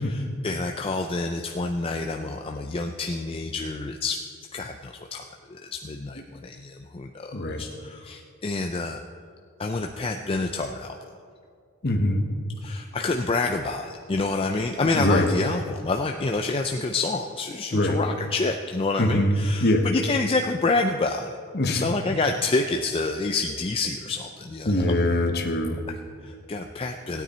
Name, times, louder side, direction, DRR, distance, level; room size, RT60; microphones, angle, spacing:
voice 1, 0.0-4.2 4.5-9.0 9.6-10.9 12.6-21.3 21.7-25.0 25.9-27.2, left 3 dB, 25° left, 4 dB, 0.4 m, -28 dB
voice 2, 7.3-7.6 11.8-12.2 14.9-15.3 17.7-18.0 19.0-19.3 19.6-19.9 21.5-21.8 24.7-25.8, left 1 dB, 45° left, 5 dB, 1.0 m, -22 dB
16.5 x 9.3 x 4.3 m, 2.2 s
head